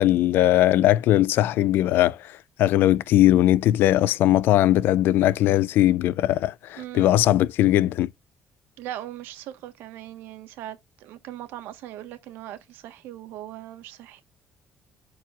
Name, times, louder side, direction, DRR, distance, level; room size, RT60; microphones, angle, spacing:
voice 1, 0.0-2.2 2.6-8.1, left 13 dB, 75° left, 0.4 m, -19 dB
voice 2, 6.8-7.2 8.8-14.2, right 13 dB, 85° right, 1.5 m, -39 dB
10.5 x 4.7 x 2.5 m
supercardioid pair, 75°, 4 cm